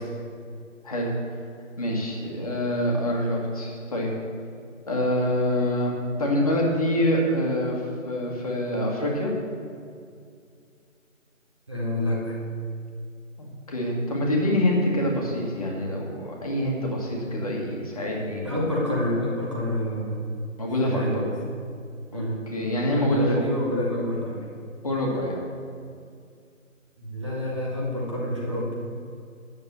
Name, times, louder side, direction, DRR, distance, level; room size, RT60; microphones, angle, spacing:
voice 1, 1.8-4.1 4.9-9.3 13.4-18.4 20.6-21.2 22.1-23.3 24.8-25.4, left 1 dB, 25° left, -2 dB, 1.7 m, -26 dB
voice 2, 11.7-12.4 18.4-20.3 20.8-21.3 22.1-22.5 22.9-24.4 27.0-28.8, left 1 dB, 20° right, -5 dB, 1.0 m, -28 dB
9.7 x 7.2 x 7.5 m, 2.3 s
figure-of-eight pair, 165°, 41 cm